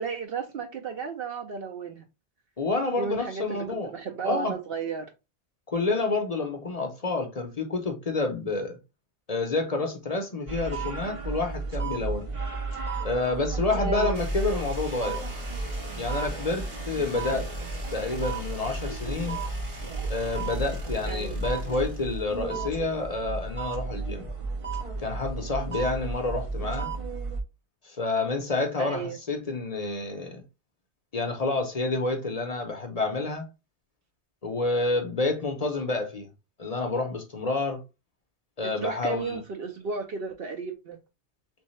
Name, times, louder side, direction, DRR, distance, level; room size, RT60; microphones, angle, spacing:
voice 1, 0.0-2.0 3.0-3.7 3.9-5.1 13.8-14.2 14.5-14.6 21.1-21.3 28.8-29.2 38.8-41.0, right 5 dB, 60° right, 0.8 m, -33 dB
voice 2, 2.6-3.9 4.2-4.5 5.7-8.8 9.3-12.3 13.0-15.3 16.0-17.5 17.9-19.4 20.1-24.2 25.0-26.9 27.8-30.4 31.1-33.5 34.4-36.3 36.6-37.8 38.6-39.4, left 3 dB, 40° left, 0.7 m, -29 dB
sound 1, 10.5-27.4, right 3 dB, 40° right, 0.5 m, -33 dB
sound 2, 14.1-22.9, left 2 dB, 80° right, 1.9 m, -40 dB
3.5 x 3.2 x 3.1 m
omnidirectional pair, 1.2 m